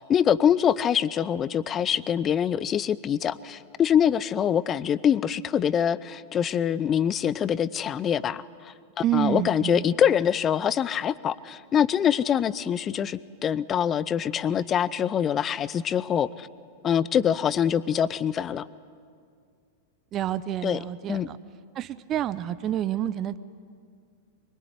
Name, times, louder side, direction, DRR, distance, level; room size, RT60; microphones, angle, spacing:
voice 1, 0.0-8.7 9.1-16.5 16.8-18.6 20.6-20.8 21.1-21.3, left 9 dB, 25° left, 19 dB, 0.7 m, -24 dB
voice 2, 9.0-9.9 20.1-21.4 21.7-23.4, right 11 dB, 30° right, 14 dB, 0.8 m, -28 dB
24.0 x 23.0 x 9.8 m, 2.2 s
figure-of-eight pair, 95°, 0 cm